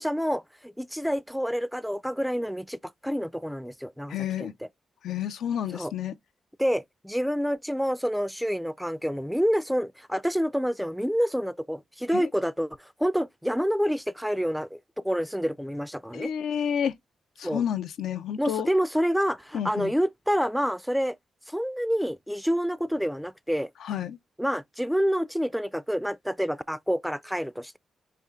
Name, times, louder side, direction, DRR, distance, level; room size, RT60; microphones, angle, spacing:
voice 1, 0.0-4.5 5.7-5.9 6.6-14.8 15.0-16.3 17.4-17.6 18.4-21.2 21.5-23.7 24.4-27.8, equal, ahead, 0.3 m, -28 dB
voice 2, 4.1-4.5 5.0-6.1 12.1-12.2 16.1-16.9 17.4-18.7 19.5-19.9 23.8-24.2, left 9 dB, 80° left, 0.4 m, -30 dB
4.2 x 2.4 x 3.6 m
cardioid pair, 60°, 0 cm